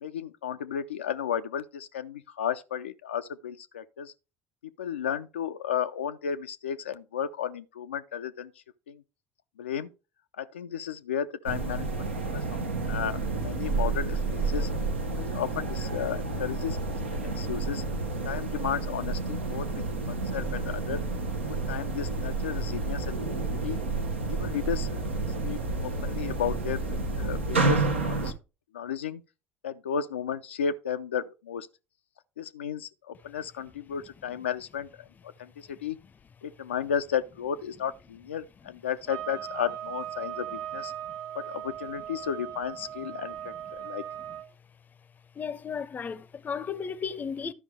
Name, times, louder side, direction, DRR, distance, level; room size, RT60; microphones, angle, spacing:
voice 1, 0.0-4.1 4.8-8.5 8.9-9.0 9.6-9.9 10.4-11.9 12.3-14.7 15.3-16.8 17.1-17.8 18.2-19.7 20.1-21.0 21.5-23.8 24.3-25.0 25.4-28.3 28.7-29.2 29.6-31.7 32.4-34.9 35.4-36.0 36.4-40.9 41.4-44.0, left 8 dB, 75° left, 0.3 m, -33 dB
sound 1, 11.5-28.3, right 3 dB, 80° right, 0.8 m, -30 dB
sound 2, 39.0-44.5, right 11 dB, 50° right, 0.8 m, -38 dB
voice 2, 45.4-47.5, left 6 dB, 30° left, 0.6 m, -35 dB
12.5 x 5.1 x 3.4 m
figure-of-eight pair, 60°, 6 cm